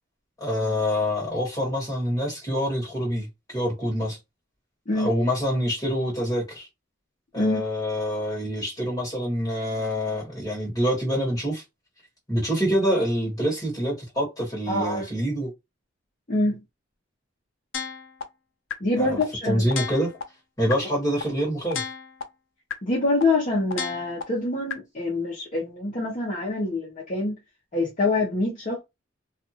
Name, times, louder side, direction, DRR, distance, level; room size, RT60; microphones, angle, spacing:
voice 1, 0.4-4.2 4.9-6.7 7.3-11.6 12.3-15.5 19.0-19.2 19.4-20.1 20.6-21.8, equal, 20° left, 1.4 m, -26 dB
voice 2, 14.7-15.1 16.3-16.6 18.8-19.7 22.8-27.3 27.7-28.8, left 2 dB, 40° left, 0.9 m, -25 dB
sound 1, 17.7-18.2 18.7-18.8 19.2-19.3 19.7-20.2 20.7-20.8 21.2-21.3 21.7-22.2 22.7-22.8 23.2-23.3 23.7-24.2 24.7-24.8, left 7 dB, 80° left, 0.5 m, -31 dB
2.5 x 2.5 x 2.8 m
head